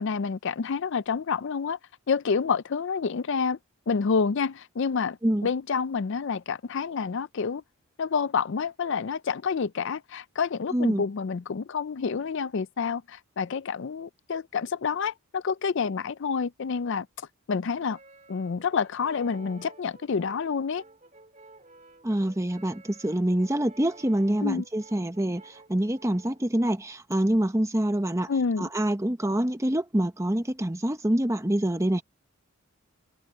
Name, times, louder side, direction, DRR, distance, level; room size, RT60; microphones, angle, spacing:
voice 1, 0.0-1.8 2.1-3.6 3.9-5.2 5.4-7.6 8.0-17.1 17.5-18.0 18.3-20.8 24.4-24.6 28.3-28.7, left 5 dB, 55° left, 0.4 m, -28 dB
voice 2, 10.7-11.0 22.0-28.3 28.6-32.0, right 1 dB, 15° right, 0.9 m, -26 dB
Brass instrument, 17.9-26.4, right 2 dB, 35° right, 3.2 m, -53 dB
head